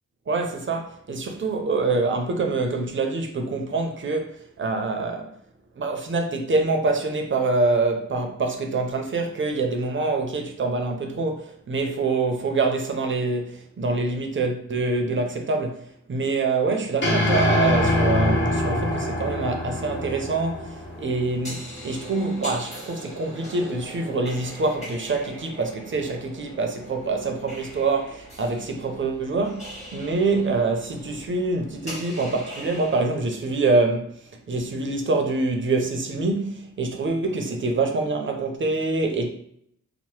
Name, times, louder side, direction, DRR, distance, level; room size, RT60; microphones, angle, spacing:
voice 1, 0.3-5.3 5.8-39.3, right 3 dB, 40° right, 0.5 m, -25 dB
sound 1, 17.0-21.4, left 2 dB, 40° left, 0.7 m, -24 dB
sound 2, 19.8-33.0, equal, 20° left, 1.0 m, -41 dB
2.8 x 2.0 x 3.1 m
wide cardioid pair, 120°, 32 cm